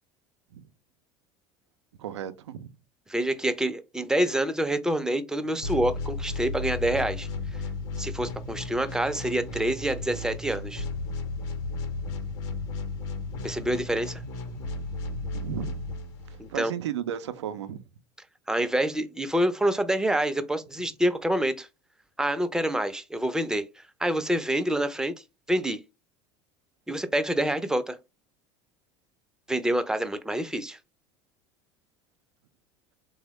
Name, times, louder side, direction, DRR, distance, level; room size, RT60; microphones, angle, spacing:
voice 1, 2.0-2.7 15.3-15.8 16.3-17.8, right 10 dB, 85° right, 0.4 m, -34 dB
voice 2, 3.1-7.3 8.0-10.8 13.4-14.2 16.4-16.7 18.5-21.7 22.2-25.1 25.5-25.8 26.9-28.0 29.5-30.8, right 1 dB, 5° right, 0.4 m, -27 dB
sound 1, 5.6-16.6, left 3 dB, 65° left, 0.8 m, -34 dB
3.2 x 2.0 x 3.0 m
hypercardioid pair, 80°, 14 cm